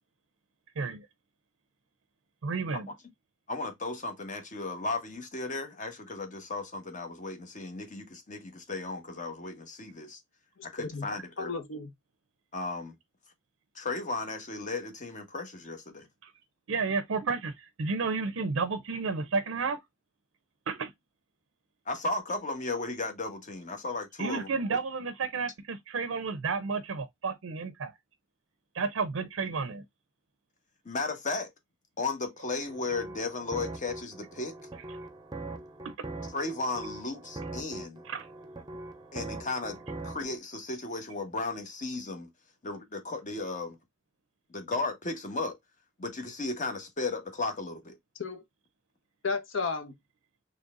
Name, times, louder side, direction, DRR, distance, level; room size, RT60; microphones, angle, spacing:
voice 1, 0.8-1.1 2.4-2.9 16.2-16.3 16.7-19.8 20.7-20.9 24.2-27.9 28.7-29.8 35.8-36.1 38.0-38.3, right 4 dB, 85° right, 0.5 m, -32 dB
voice 2, 3.5-10.2 10.6-11.5 12.5-12.9 13.7-16.1 21.9-24.5 30.8-31.5 32.0-34.5 36.3-38.0 39.1-42.3 42.6-43.8 44.5-45.6 46.0-48.0, left 3 dB, 40° left, 1.1 m, -35 dB
voice 3, 10.6-11.1 11.4-11.9 48.2-48.4 49.2-50.0, left 4 dB, 70° left, 0.9 m, -33 dB
sound 1, 32.7-40.4, right 2 dB, 20° right, 0.6 m, -42 dB
3.9 x 3.3 x 2.4 m
head